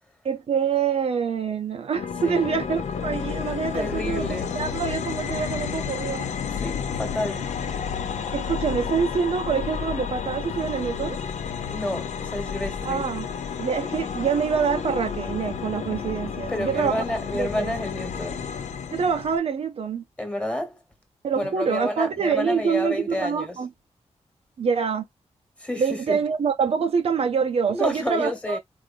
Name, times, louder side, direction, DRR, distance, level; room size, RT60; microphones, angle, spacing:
voice 1, 0.2-4.3 4.5-6.3 8.3-11.2 12.8-13.3 13.6-17.0 17.4-17.7 18.9-20.0 21.2-23.7 24.6-25.0 25.8-28.6, right 6 dB, 60° right, 0.5 m, -25 dB
sound 1, 1.9-19.4, left 7 dB, 80° left, 0.7 m, -31 dB
voice 2, 3.7-4.5 6.6-7.5 11.7-13.0 16.5-18.4 20.2-20.8 21.3-23.6 25.6-26.2 27.7-28.6, left 1 dB, 10° left, 1.2 m, -30 dB
4.5 x 2.6 x 3.4 m
wide cardioid pair, 165°, 12 cm